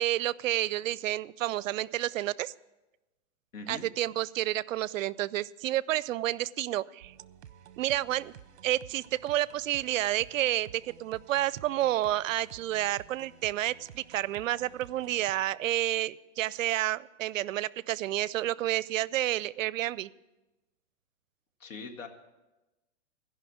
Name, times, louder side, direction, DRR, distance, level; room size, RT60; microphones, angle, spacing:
voice 1, 0.0-2.5 3.7-7.1 7.8-8.3 8.6-20.1, right 14 dB, 80° right, 21 dB, 0.5 m, -30 dB
voice 2, 3.5-3.9 21.6-22.1, left 4 dB, 80° left, 5 dB, 1.8 m, -41 dB
sound 1, 7.0-15.3, right 10 dB, 60° right, 0.9 m, -52 dB
15.0 x 5.7 x 8.5 m, 1.1 s
hypercardioid pair, 170°, 38 cm